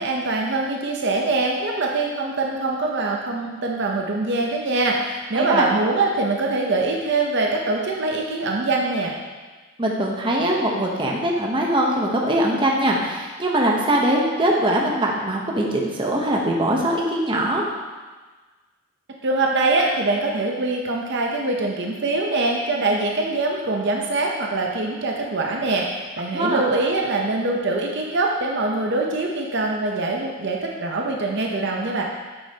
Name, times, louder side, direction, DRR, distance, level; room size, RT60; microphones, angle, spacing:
voice 1, 0.0-9.1 19.2-32.0, right 2 dB, 55° right, 0 dB, 0.7 m, -23 dB
voice 2, 5.3-5.7 9.8-17.6 26.3-26.6, right 1 dB, 25° right, -2 dB, 0.9 m, -22 dB
8.5 x 6.5 x 2.9 m, 1.3 s
head